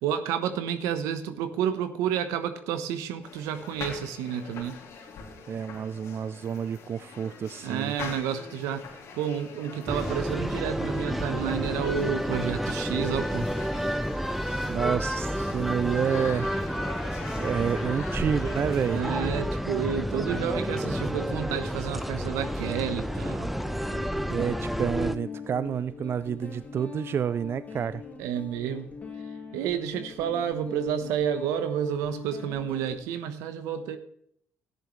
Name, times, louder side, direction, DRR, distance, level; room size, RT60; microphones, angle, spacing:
voice 1, 0.0-4.8 7.6-8.8 9.1-13.5 18.9-23.5 28.2-28.9 29.5-34.0, right 9 dB, 85° right, 10 dB, 1.0 m, -30 dB
sound 1, 3.2-19.0, left 5 dB, 70° left, 3.0 m, -43 dB
voice 2, 5.5-8.0 14.7-16.5 17.4-19.0 24.3-28.0, right 8 dB, 50° right, 16 dB, 0.4 m, -29 dB
sound 2, 9.9-25.1, equal, 5° right, 0.7 m, -30 dB
Guitar, 20.3-33.0, left 4 dB, 30° left, 3.1 m, -43 dB
13.5 x 10.5 x 3.2 m, 0.68 s
supercardioid pair, 60°, 5 cm